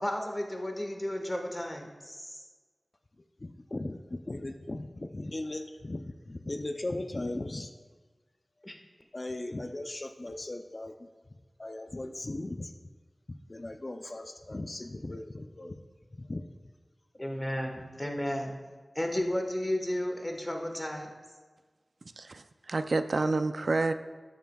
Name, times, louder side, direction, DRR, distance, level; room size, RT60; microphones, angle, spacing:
voice 1, 0.0-2.4 8.6-8.7 17.2-18.5 18.9-21.1, left 1 dB, 20° left, 3 dB, 1.3 m, -33 dB
voice 2, 3.4-7.7 9.1-11.1 11.6-12.7 13.5-15.8 16.1-16.4, left 2 dB, 45° left, 6 dB, 0.5 m, -38 dB
voice 3, 22.2-23.9, right 3 dB, 75° right, 10 dB, 0.4 m, -29 dB
12.5 x 9.2 x 2.3 m, 1.4 s
wide cardioid pair, 60°, 0 cm